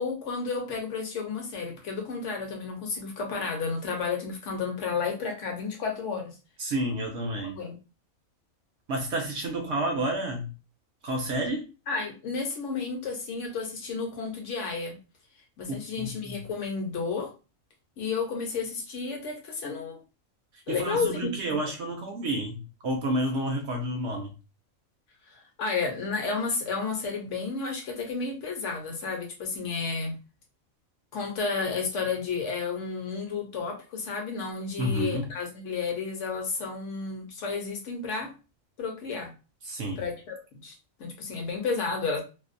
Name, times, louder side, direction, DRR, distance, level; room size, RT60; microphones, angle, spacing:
voice 1, 0.0-6.3 7.5-7.7 11.9-15.0 15.6-17.3 18.0-20.0 20.7-21.6 25.3-30.2 31.1-38.3 38.8-39.3 40.0-40.4 40.6-40.7 41.0-42.2, left 4 dB, 65° left, 0.9 m, -32 dB
voice 2, 6.6-7.6 8.9-10.5 11.0-11.7 15.7-16.4 20.5-24.3 34.8-35.3 39.6-40.1, right 1 dB, 65° right, 0.7 m, -30 dB
2.6 x 2.1 x 2.4 m
omnidirectional pair, 1.4 m